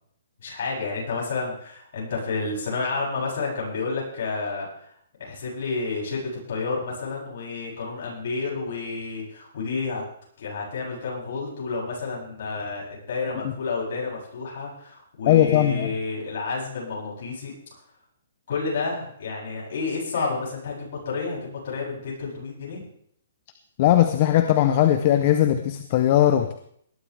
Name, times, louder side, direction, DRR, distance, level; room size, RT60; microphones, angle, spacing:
voice 1, 0.4-4.9 5.2-10.0 10.4-17.5 18.5-22.8, left 4 dB, 50° left, -4 dB, 8.0 m, -30 dB
voice 2, 15.3-15.9 23.8-26.5, left 12 dB, 35° left, 8 dB, 0.8 m, -19 dB
19.5 x 12.0 x 3.5 m, 0.66 s
hypercardioid pair, 170°, 0 cm